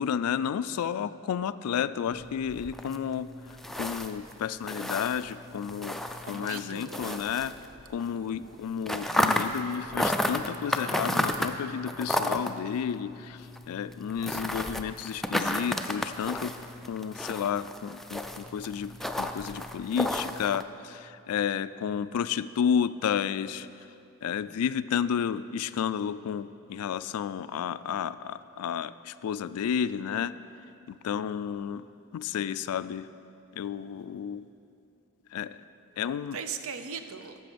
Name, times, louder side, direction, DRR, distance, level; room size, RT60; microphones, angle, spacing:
voice 1, 0.0-3.3 3.8-6.0 6.2-7.5 7.9-16.5 16.9-23.7 24.2-30.3 30.9-31.9 32.1-33.1 33.5-34.5 35.3-35.6 36.0-36.4, left 8 dB, 80° left, 15 dB, 0.3 m, -31 dB
sound 1, 2.1-8.1 8.3-20.6, left 1 dB, ahead, 0.3 m, -33 dB
voice 2, 6.2-7.2 8.1-8.6 36.3-37.4, right 6 dB, 70° right, 8 dB, 0.6 m, -39 dB
13.5 x 6.1 x 5.1 m, 2.6 s
head